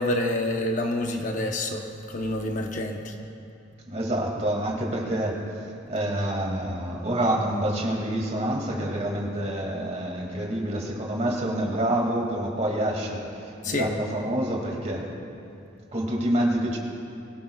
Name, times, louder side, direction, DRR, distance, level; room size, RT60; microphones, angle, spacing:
voice 1, 0.0-3.1 13.6-13.9, left 1 dB, 40° left, 3 dB, 0.9 m, -27 dB
voice 2, 3.9-5.4 5.9-15.1 15.9-16.8, right 1 dB, 35° right, -1 dB, 2.3 m, -27 dB
23.0 x 16.0 x 2.4 m, 2.6 s
head